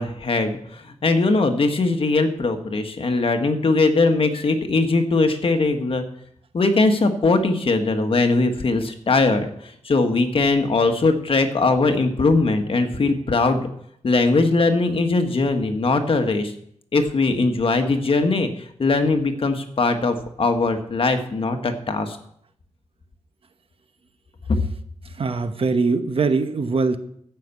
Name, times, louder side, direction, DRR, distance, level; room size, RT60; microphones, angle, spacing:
voice 1, 0.0-6.0 6.5-13.7 14.0-16.5 16.9-22.2 24.5-24.6, left 3 dB, 50° left, 6 dB, 1.4 m, -20 dB
voice 2, 25.2-27.0, right 4 dB, 55° right, 10 dB, 1.0 m, -22 dB
14.5 x 5.8 x 8.3 m, 0.69 s
wide cardioid pair, 145°, 12 cm